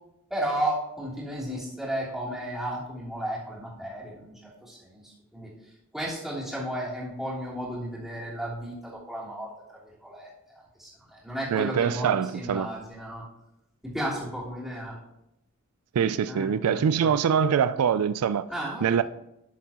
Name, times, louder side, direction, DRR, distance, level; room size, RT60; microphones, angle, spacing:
voice 1, 0.3-4.3 4.6-5.5 5.9-13.2 13.8-15.0 16.3-17.1 18.5-19.0, right 1 dB, ahead, 3.1 m, -34 dB
voice 2, 11.5-12.7 16.0-18.5 18.8-19.0, right 7 dB, 85° right, 0.3 m, -24 dB
12.0 x 7.2 x 2.9 m
head